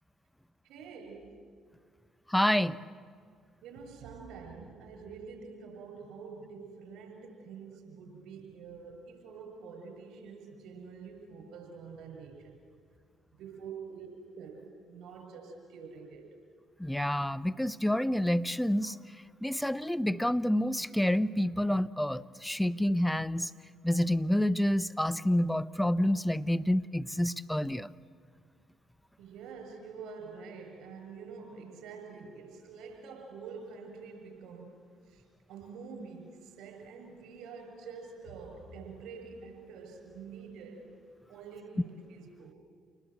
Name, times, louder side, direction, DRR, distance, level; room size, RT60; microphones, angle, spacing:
voice 1, 0.6-1.4 3.6-12.6 13.4-14.1 14.3-16.3 29.2-34.8 35.1-35.2 35.5-40.8 41.3-42.6, right 5 dB, 70° right, 3 dB, 7.2 m, -46 dB
voice 2, 2.3-2.8 16.8-18.9 19.4-23.5 23.8-27.9, left 1 dB, 5° left, 14 dB, 0.8 m, -28 dB
28.5 x 20.0 x 8.0 m, 2.1 s
hypercardioid pair, 55°, 0 cm